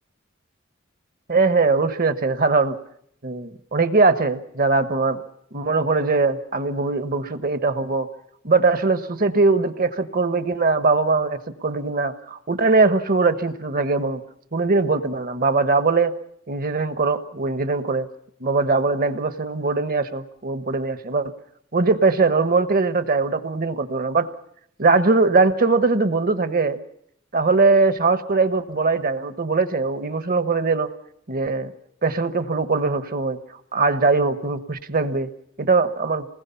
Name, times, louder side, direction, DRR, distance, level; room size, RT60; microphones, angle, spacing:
voice 1, 1.3-2.8 3.2-5.2 5.5-8.1 8.4-14.2 14.5-16.1 16.5-18.1 18.4-21.3 21.7-24.3 24.8-26.8 27.3-30.9 31.3-31.7 32.0-33.4 33.7-35.3 35.6-36.3, right 3 dB, 50° right, 11 dB, 1.1 m, -21 dB
27.0 x 20.0 x 5.7 m, 0.69 s
head